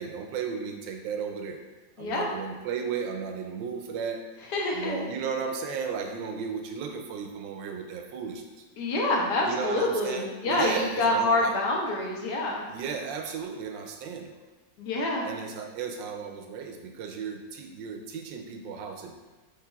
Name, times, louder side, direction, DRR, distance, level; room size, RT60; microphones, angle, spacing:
voice 1, 0.0-1.6 2.0-4.2 4.7-8.6 9.4-11.6 12.7-14.4 15.2-19.1, right 6 dB, 85° right, 4 dB, 1.3 m, -35 dB
voice 2, 2.0-2.3 4.5-5.1 8.8-12.7 14.8-15.3, left 2 dB, 70° left, -1 dB, 1.3 m, -27 dB
6.6 x 3.1 x 2.3 m, 1.3 s
omnidirectional pair, 2.0 m